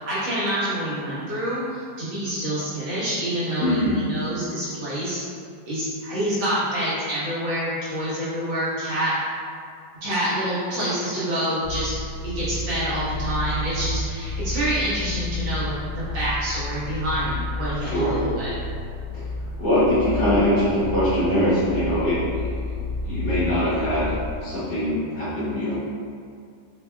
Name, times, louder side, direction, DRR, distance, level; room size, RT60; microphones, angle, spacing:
voice 1, 0.0-5.2 5.6-9.1 10.0-12.0 12.2-18.5, right 1 dB, 85° right, -11 dB, 2.1 m, -27 dB
voice 2, 3.6-4.0 17.8-18.1 19.1-19.3 19.6-22.5 23.0-25.8, equal, 70° left, -11 dB, 2.1 m, -22 dB
sound 1, 11.6-24.4, left 2 dB, 90° left, 0.7 m, -31 dB
4.9 x 2.8 x 2.3 m, 2.3 s
omnidirectional pair, 2.0 m